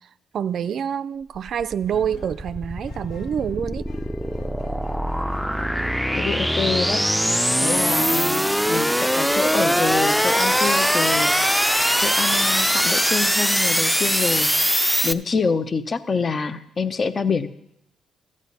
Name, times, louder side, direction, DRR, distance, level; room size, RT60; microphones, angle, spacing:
voice 1, 0.3-3.9, right 8 dB, 65° right, 0.4 m, -26 dB
sound 1, 1.4-15.1, equal, ahead, 0.5 m, -22 dB
sound 2, 1.9-8.1, left 6 dB, 75° left, 0.9 m, -46 dB
voice 2, 6.1-7.0 7.6-11.3 12.0-17.5, left 5 dB, 45° left, 0.8 m, -26 dB
Glass, 9.9-14.9, left 1 dB, 20° left, 0.9 m, -33 dB
13.0 x 8.5 x 4.1 m
supercardioid pair, 65°, 0 cm